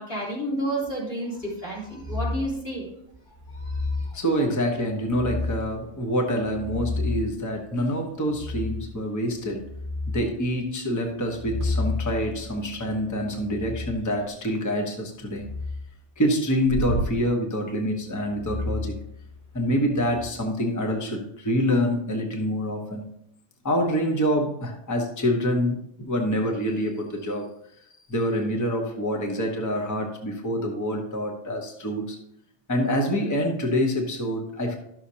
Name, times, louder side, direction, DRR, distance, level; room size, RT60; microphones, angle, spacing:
voice 1, 0.0-2.9 3.5-4.2, right 1 dB, 85° left, -6 dB, 3.9 m, -31 dB
sound 1, 2.0-2.5 3.3-4.1 5.0-5.7 6.3-7.3 8.3-8.9 9.3-10.2 11.2-13.9 15.2-15.8 16.6-17.1 18.3-19.5 20.0-20.2, left 2 dB, 45° left, 2.2 m, -31 dB
voice 2, 4.1-9.6 10.1-15.5 16.2-19.0 19.5-23.1 23.6-27.5 27.8-32.2 32.7-34.8, equal, 15° left, 2 dB, 1.0 m, -26 dB
12.5 x 6.5 x 2.8 m, 0.73 s
omnidirectional pair, 1.2 m